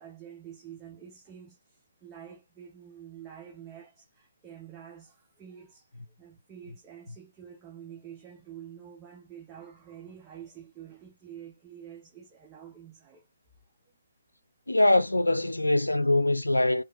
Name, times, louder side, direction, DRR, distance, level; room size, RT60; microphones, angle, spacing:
voice 1, 0.0-13.3 13.8-13.9, right 9 dB, 15° right, 0.8 m, -48 dB
voice 2, 14.7-16.8, left 1 dB, 80° left, 0.4 m, -23 dB
3.1 x 2.9 x 3.5 m
figure-of-eight pair, 135°, 0 cm